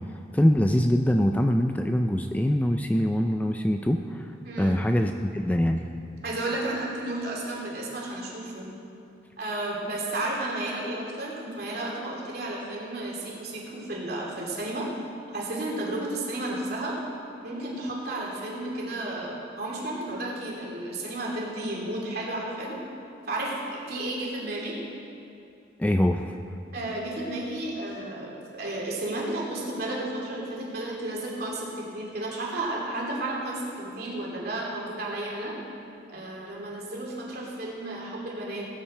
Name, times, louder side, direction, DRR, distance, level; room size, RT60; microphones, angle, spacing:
voice 1, 0.3-4.2 4.6-5.8 25.8-26.2, equal, 10° left, 5 dB, 0.3 m, -23 dB
voice 2, 4.4-4.8 6.2-8.7 9.4-14.9 15.3-17.0 17.4-22.8 23.3-24.8 26.7-35.5 36.1-38.6, right 1 dB, 55° right, -4 dB, 2.8 m, -32 dB
18.5 x 8.9 x 4.3 m, 2.6 s
head